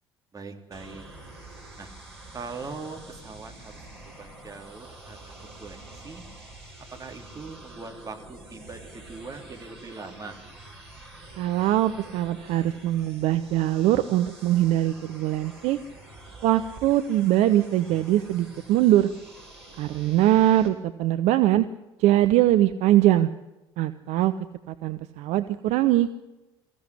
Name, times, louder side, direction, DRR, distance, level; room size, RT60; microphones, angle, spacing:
voice 1, 0.3-1.1 1.8-1.9 2.3-3.7 4.0-5.3 5.6-6.2 6.9-10.4, right 4 dB, 25° right, 3 dB, 3.9 m, -41 dB
sound 1, 0.7-20.7, right 2 dB, 80° right, 6.0 m, -47 dB
voice 2, 11.4-15.8 16.4-19.1 19.8-21.7 22.0-23.3 23.8-24.3 24.7-26.1, right 13 dB, 55° right, 10 dB, 0.9 m, -22 dB
23.5 x 15.5 x 9.7 m, 1.0 s
figure-of-eight pair, 55°, 14 cm